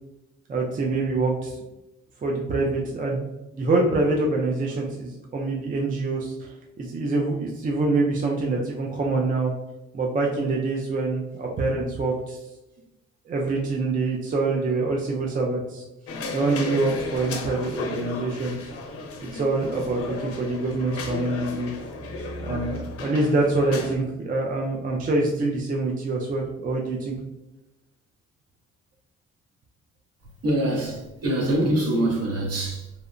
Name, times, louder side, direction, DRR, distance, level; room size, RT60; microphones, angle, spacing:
voice 1, 0.5-1.6 2.2-3.3 3.5-9.5 9.9-12.4 13.3-15.8 16.3-18.7 19.2-21.7 22.4-27.2, right 3 dB, 30° right, 0.4 m, -25 dB
sound 1, 16.1-24.0, left 3 dB, 50° left, 0.5 m, -34 dB
voice 2, 30.4-32.9, right 1 dB, 50° right, 0.9 m, -24 dB
2.8 x 2.0 x 2.4 m
cardioid pair, 90°, 30 cm